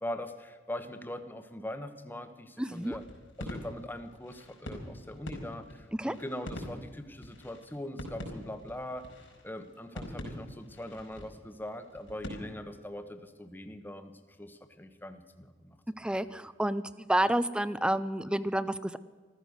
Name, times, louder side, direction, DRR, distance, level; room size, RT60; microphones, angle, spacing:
voice 1, 0.0-3.0 3.4-9.1 9.4-15.8, left 1 dB, 10° left, 8 dB, 1.1 m, -41 dB
voice 2, 2.6-3.0 6.0-6.2 16.0-19.0, right 1 dB, 5° right, 15 dB, 0.5 m, -30 dB
sound 1, 2.7-12.3, equal, 85° left, 4.6 m, -44 dB
14.5 x 14.0 x 6.5 m, 1.5 s
head